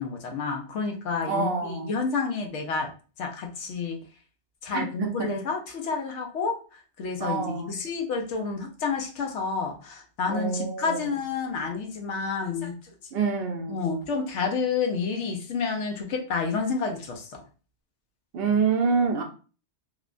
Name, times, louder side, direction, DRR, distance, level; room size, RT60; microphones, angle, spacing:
voice 1, 0.0-2.9 3.2-4.0 4.6-12.7 13.7-17.3, left 5 dB, 80° left, 2 dB, 0.9 m, -29 dB
voice 2, 1.2-1.9 4.7-5.3 7.2-7.7 10.3-11.1 13.1-13.9 18.3-19.2, right 5 dB, 65° right, 3 dB, 0.7 m, -27 dB
2.9 x 2.1 x 2.4 m, 0.37 s
omnidirectional pair, 1.2 m